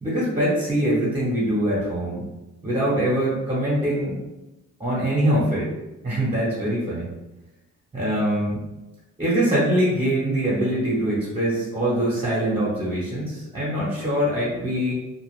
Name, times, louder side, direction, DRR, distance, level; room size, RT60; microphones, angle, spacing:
voice 1, 0.0-2.2 2.6-4.2 4.8-5.7 6.0-7.1 7.9-8.6 9.2-15.0, right 1 dB, 20° right, -8 dB, 1.0 m, -23 dB
2.4 x 2.3 x 3.2 m, 1.0 s
cardioid pair, 90°, 30 cm